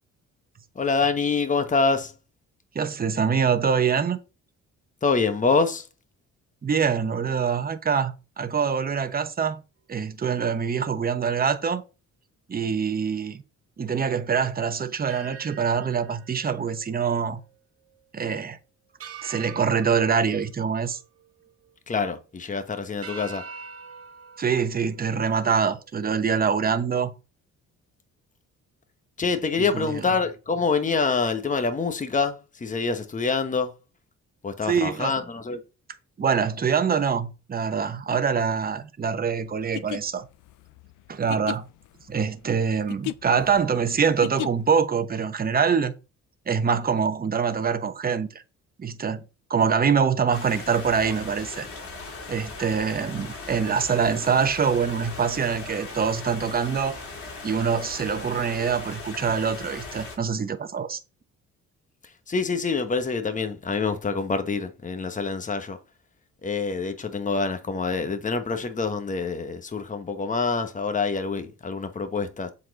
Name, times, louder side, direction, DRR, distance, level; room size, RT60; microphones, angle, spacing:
voice 1, 0.8-2.1 5.0-5.8 21.9-23.4 29.2-33.7 34.4-35.6 62.3-65.8 66.4-72.5, left 4 dB, 25° left, 1.1 m, -26 dB
voice 2, 2.7-4.2 6.6-9.6 9.9-11.8 12.5-13.4 13.8-17.4 18.1-18.6 19.2-21.0 24.4-27.1 29.6-30.1 34.7-35.2 36.2-40.3 41.1-41.7 42.1-45.9 46.5-48.3 48.8-49.2 49.5-51.7 52.3-57.0 57.4-61.0, right 6 dB, 30° right, 0.9 m, -24 dB
sound 1, 15.1-17.6 17.9-18.0 19.0-21.5 22.0-22.4 23.0-25.8, right 6 dB, 50° right, 1.6 m, -44 dB
sound 2, 39.6-44.8, left 15 dB, 85° left, 0.5 m, -35 dB
sound 3, 50.3-60.2, left 3 dB, 45° left, 3.0 m, -39 dB
7.4 x 4.2 x 4.0 m
cardioid pair, 90°, 30 cm